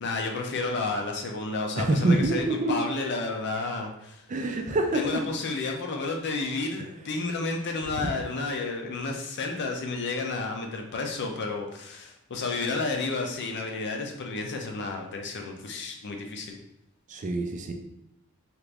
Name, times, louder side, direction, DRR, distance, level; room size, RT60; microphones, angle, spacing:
voice 1, 0.0-4.2 4.9-16.6, left 3 dB, 55° left, 2 dB, 0.5 m, -31 dB
voice 2, 1.8-2.8 4.3-5.2 6.8-6.9 8.0-8.1 17.1-17.7, right 2 dB, 35° right, 4 dB, 0.4 m, -26 dB
2.8 x 2.5 x 3.3 m, 0.82 s
head